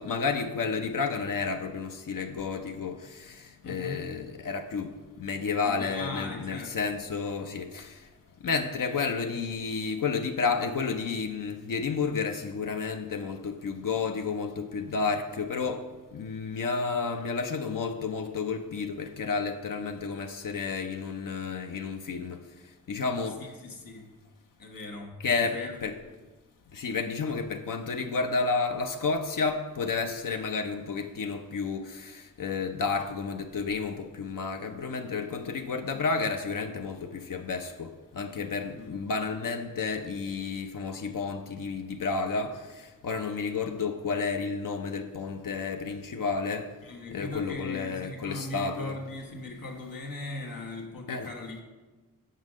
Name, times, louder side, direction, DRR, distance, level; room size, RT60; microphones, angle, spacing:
voice 1, 0.0-4.9 5.2-8.0 8.4-22.4 22.9-23.4 25.2-26.0 26.7-46.7 47.1-48.9 51.1-51.3, left 4 dB, 70° left, 0.6 m, -31 dB
voice 2, 3.6-4.2 5.6-6.9 23.6-24.1 24.6-25.7 38.7-39.0 46.8-51.6, left 2 dB, 85° left, 1.4 m, -39 dB
6.5 x 5.6 x 6.2 m
wide cardioid pair, 70°, 34 cm